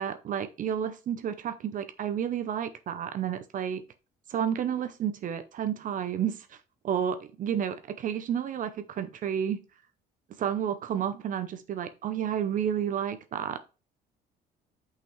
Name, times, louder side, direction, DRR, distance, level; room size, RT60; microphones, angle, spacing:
voice 1, 0.0-3.8 4.3-6.6 6.8-9.6 10.4-13.7, right 9 dB, 50° right, 0.7 m, -31 dB
5.9 x 5.7 x 3.1 m
cardioid pair, 110°, 17 cm